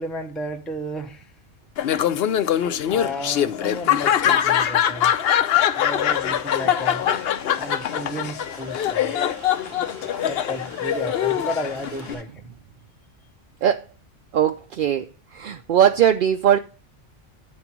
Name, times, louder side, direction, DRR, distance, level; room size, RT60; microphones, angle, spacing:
voice 1, 0.0-1.3 2.9-7.0 7.5-9.2 10.3-12.5, equal, ahead, 0.7 m, -33 dB
Laughter, 1.8-12.1, left 10 dB, 65° left, 0.7 m, -23 dB
sound 1, 5.9-12.2, right 4 dB, 85° right, 1.7 m, -46 dB
voice 2, 14.3-15.0 15.3-16.6, right 9 dB, 60° right, 0.6 m, -19 dB
9.6 x 4.0 x 5.9 m
omnidirectional pair, 1.2 m